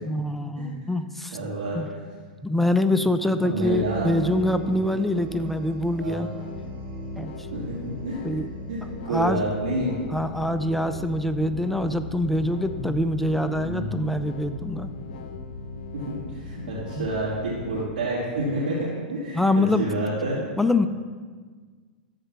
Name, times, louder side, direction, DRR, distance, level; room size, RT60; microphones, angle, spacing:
voice 1, 0.1-1.4 1.7-1.9 2.4-6.3 7.2-7.3 8.2-8.5 9.1-9.4 10.1-14.9 17.0-17.1 19.3-19.9 20.6-20.9, left 1 dB, 5° left, 10 dB, 0.5 m, -24 dB
voice 2, 1.3-1.8 3.4-4.1 4.3-4.6 6.0-6.2 7.5-8.2 8.7-10.2 13.6-13.9 15.9-20.4, right 2 dB, 75° right, -8 dB, 3.1 m, -29 dB
sound 1, 3.6-11.0, right 6 dB, 35° right, 2.1 m, -40 dB
sound 2, 6.3-17.9, left 3 dB, 65° left, 0.8 m, -37 dB
13.0 x 4.4 x 6.0 m, 1.5 s
hypercardioid pair, 100°, 5 cm